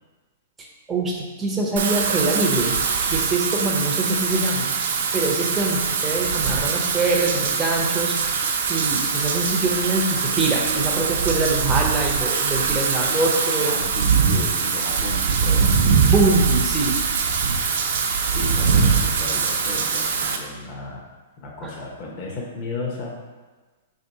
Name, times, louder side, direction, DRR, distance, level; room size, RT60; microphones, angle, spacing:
voice 1, 0.6-2.8 3.1-4.7 5.1-8.2 8.7-13.7 16.1-17.0 21.6-21.7, right 2 dB, 10° right, -2 dB, 0.6 m, -24 dB
Wind / Rain, 1.8-20.4, right 5 dB, 60° right, 0.5 m, -22 dB
voice 2, 13.6-15.7 18.2-21.1 21.4-23.1, left 2 dB, 30° left, -3 dB, 0.8 m, -34 dB
3.3 x 2.7 x 4.5 m, 1.3 s
hypercardioid pair, 170°, 0 cm